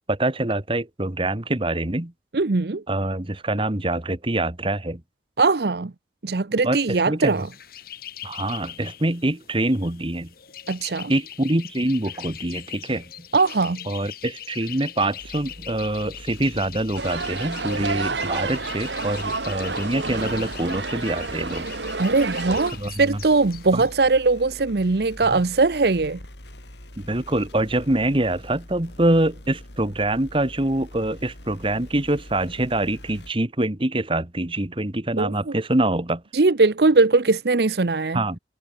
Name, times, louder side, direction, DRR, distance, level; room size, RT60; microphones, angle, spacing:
voice 1, 0.1-2.1 2.9-5.0 6.6-7.3 8.2-10.3 11.1-13.0 13.9-21.7 22.8-23.2 23.7-23.8 25.2-25.4 27.0-36.2 38.1-38.4, right 1 dB, 30° right, 1.6 m, -25 dB
voice 2, 2.3-2.8 5.4-5.9 6.2-7.5 10.7-11.1 13.3-13.8 22.0-26.2 35.2-35.6 36.3-38.2, right 3 dB, 60° right, 0.7 m, -20 dB
sound 1, 7.3-23.9, left 11 dB, 55° left, 2.4 m, -41 dB
sound 2, 15.2-33.3, left 1 dB, 80° left, 5.6 m, -44 dB
sound 3, 17.0-22.7, right 3 dB, 85° right, 2.6 m, -29 dB
head